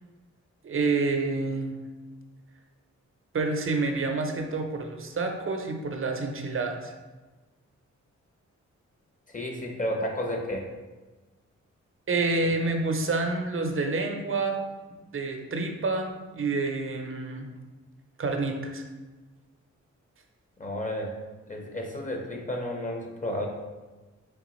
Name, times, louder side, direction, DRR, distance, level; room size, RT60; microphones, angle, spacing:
voice 1, 0.6-1.7 3.3-6.9 12.1-14.6 15.1-17.5 18.2-18.8, right 3 dB, 45° right, 4 dB, 0.6 m, -28 dB
voice 2, 9.3-10.6 20.6-21.1 21.5-23.5, left 1 dB, 25° left, 1 dB, 0.8 m, -32 dB
3.5 x 3.5 x 3.0 m, 1.2 s
cardioid pair, 60°, 30 cm